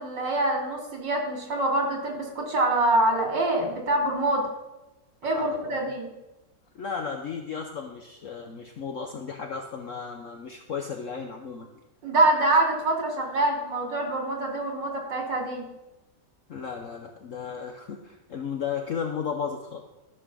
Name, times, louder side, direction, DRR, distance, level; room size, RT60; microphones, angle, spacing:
voice 1, 0.0-4.5 5.2-6.1 12.0-15.6, right 2 dB, 85° right, 0 dB, 3.5 m, -25 dB
voice 2, 5.3-5.8 6.7-11.7 16.5-19.8, left 6 dB, 55° left, 4 dB, 1.1 m, -34 dB
13.5 x 6.2 x 6.2 m, 0.98 s
omnidirectional pair, 1.9 m